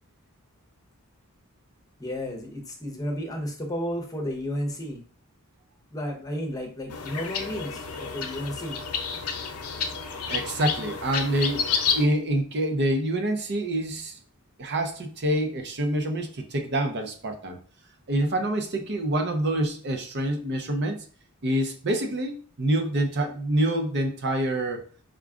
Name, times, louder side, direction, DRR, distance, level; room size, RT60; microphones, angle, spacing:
voice 1, 2.0-5.0 5.9-8.8, equal, 15° left, 2 dB, 0.7 m, -32 dB
sound 1, 6.9-12.0, left 6 dB, 90° left, 0.7 m, -30 dB
voice 2, 10.3-11.6 11.9-14.2 14.6-17.6 18.1-21.0 21.4-24.8, right 1 dB, 50° right, 4 dB, 0.6 m, -26 dB
4.9 x 2.3 x 3.6 m, 0.43 s
head